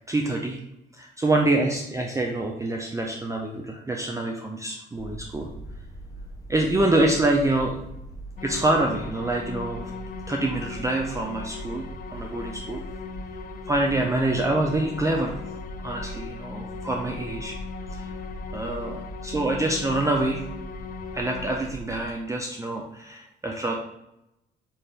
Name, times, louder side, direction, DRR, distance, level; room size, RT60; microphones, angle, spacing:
voice 1, 0.1-0.6 0.9-5.5 6.5-7.8 8.4-9.9 10.3-11.8 12.1-12.8 13.7-15.3 15.8-17.5 17.9-18.0 18.5-20.4 21.1-23.7, right 2 dB, 15° right, 1 dB, 0.4 m, -26 dB
sound 1, 5.0-22.1, right 1 dB, 15° left, 0.7 m, -40 dB
sound 2, 8.4-21.6, left 6 dB, 45° left, 0.4 m, -39 dB
4.5 x 2.5 x 3.2 m, 0.87 s
cardioid pair, 90°, 20 cm